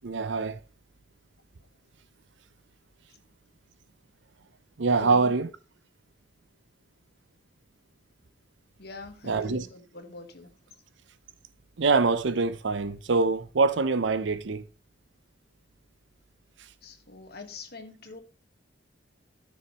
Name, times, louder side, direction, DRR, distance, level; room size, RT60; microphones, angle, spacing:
voice 1, 0.0-0.6 4.8-5.5 9.2-9.7 11.8-14.6, right 4 dB, 70° right, 0.7 m, -24 dB
voice 2, 5.0-5.4 8.8-10.5 16.8-18.2, left 3 dB, 55° left, 1.5 m, -43 dB
14.0 x 6.3 x 3.0 m
head